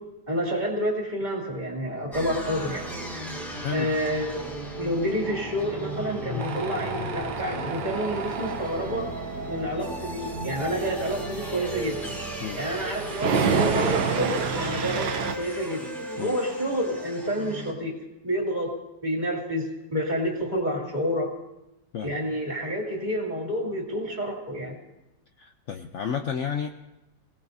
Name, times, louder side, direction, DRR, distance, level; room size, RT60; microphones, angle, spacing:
voice 1, 0.3-2.8 3.7-4.5 4.8-9.1 9.5-12.0 12.6-15.9 16.2-17.9 18.2-18.7 19.0-21.3 22.0-24.8, equal, 25° right, -1 dB, 2.7 m, -29 dB
sound 1, 2.1-17.7, equal, ahead, 2.2 m, -35 dB
voice 2, 3.5-3.9 12.4-12.6 16.2-16.4 21.9-22.1 25.4-26.7, left 7 dB, 75° left, 6 dB, 0.6 m, -31 dB
Tools, 6.4-15.3, right 6 dB, 80° right, 1.6 m, -30 dB
26.5 x 17.5 x 2.7 m, 0.93 s
omnidirectional pair, 2.0 m